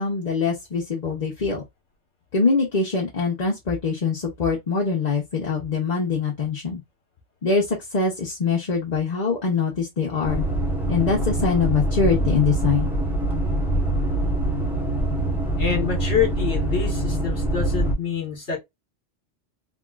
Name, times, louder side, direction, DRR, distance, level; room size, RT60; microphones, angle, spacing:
voice 1, 0.0-1.6 2.3-6.8 7.4-10.5 10.9-12.9, left 4 dB, 40° left, 0.8 m, -23 dB
sound 1, 10.2-17.9, right 1 dB, ahead, 0.8 m, -24 dB
voice 2, 15.6-18.6, left 7 dB, 65° left, 1.4 m, -26 dB
3.5 x 2.3 x 2.3 m
omnidirectional pair, 1.3 m